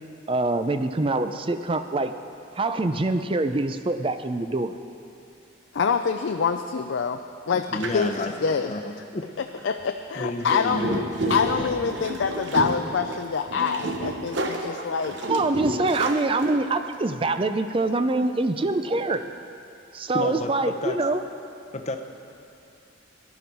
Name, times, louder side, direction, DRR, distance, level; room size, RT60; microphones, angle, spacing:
voice 1, 0.3-2.1 2.6-4.8 15.2-19.2 19.9-21.2, right 2 dB, 25° right, 9 dB, 0.5 m, -25 dB
voice 2, 5.7-7.2 7.5-8.7 9.6-10.8 11.3-15.2, left 6 dB, 70° left, 6 dB, 0.4 m, -26 dB
voice 3, 7.5-9.2 10.1-11.8 20.1-21.0 21.7-22.0, left 2 dB, 35° left, 5 dB, 0.8 m, -31 dB
sound 1, 7.8-8.3 9.6-9.8 10.4-16.8, right 2 dB, 70° right, 1.0 m, -30 dB
16.5 x 11.0 x 4.6 m, 2.6 s
head